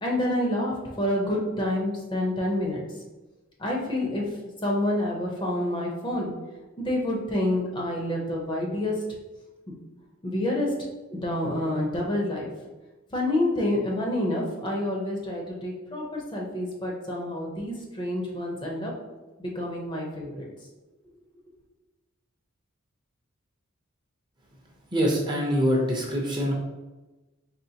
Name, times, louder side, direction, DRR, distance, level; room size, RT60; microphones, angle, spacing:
voice 1, 0.0-2.8 3.6-4.2 4.6-6.3 6.8-8.9 10.2-10.7 11.1-12.5 13.1-18.9 19.4-20.5, left 1 dB, 20° left, -2 dB, 0.6 m, -28 dB
voice 2, 24.9-26.5, equal, 20° right, -2 dB, 0.6 m, -24 dB
4.3 x 3.0 x 2.8 m, 1.1 s
head